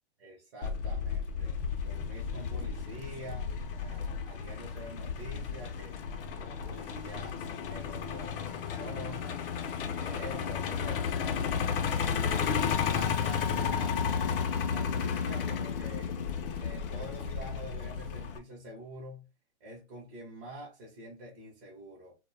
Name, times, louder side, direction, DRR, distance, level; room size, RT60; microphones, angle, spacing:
voice 1, 0.2-1.5 1.8-3.5 3.8-6.0 6.3-9.4 9.8-11.1 12.3-14.1 14.7-16.1 16.6-19.3 19.6-22.1, equal, 30° right, 0.7 m, -46 dB
Truck, 0.6-18.4, left 7 dB, 55° left, 0.5 m, -33 dB
2.1 x 2.1 x 3.2 m
hypercardioid pair, 150°, 34 cm